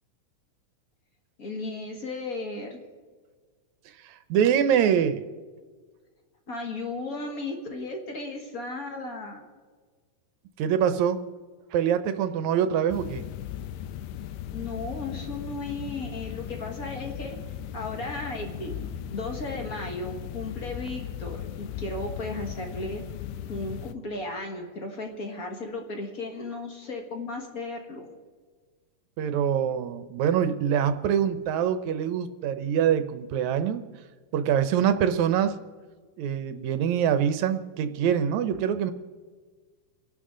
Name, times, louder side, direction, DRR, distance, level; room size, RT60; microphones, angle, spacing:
voice 1, 1.4-2.8 6.5-9.4 14.5-17.4 17.7-23.0 23.5-28.1, left 2 dB, 40° left, 3 dB, 1.3 m, -35 dB
voice 2, 4.0-5.2 10.6-11.2 11.7-13.2 29.2-33.8 34.3-35.6 36.2-38.9, right 8 dB, 75° right, 10 dB, 1.9 m, -24 dB
sound 1, 12.9-23.9, left 10 dB, 85° left, 2.2 m, -37 dB
30.0 x 11.5 x 3.8 m, 1.5 s
omnidirectional pair, 3.8 m